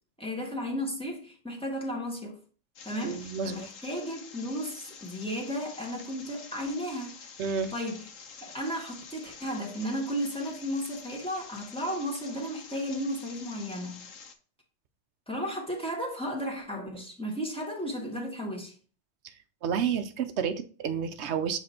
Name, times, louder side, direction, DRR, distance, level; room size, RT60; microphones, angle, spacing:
voice 1, 0.2-2.4 2.8-7.2 7.7-8.1 8.4-14.1 15.3-18.7, equal, 5° left, 1.6 m, -34 dB
sound 1, 2.8-14.3, left 5 dB, 85° left, 1.2 m, -48 dB
voice 2, 3.0-3.7 7.4-7.7 19.6-21.6, right 7 dB, 65° right, 0.9 m, -30 dB
7.5 x 3.3 x 4.3 m
omnidirectional pair, 1.3 m